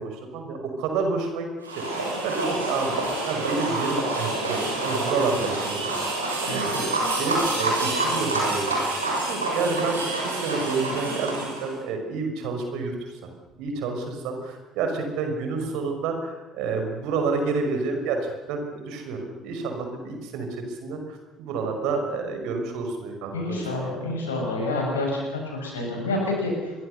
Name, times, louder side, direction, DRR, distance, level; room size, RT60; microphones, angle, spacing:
voice 1, 0.0-1.5 2.2-2.9 3.2-5.9 6.4-6.9 7.2-8.8 9.2-13.3 13.6-24.0, right 4 dB, 60° right, 4 dB, 5.8 m, -29 dB
sound 1, 1.6-11.7, right 2 dB, 85° right, 6.2 m, -27 dB
voice 2, 23.3-26.7, left 2 dB, 80° left, 1 dB, 7.3 m, -28 dB
26.5 x 23.0 x 6.8 m, 1.2 s
figure-of-eight pair, 55°, 0 cm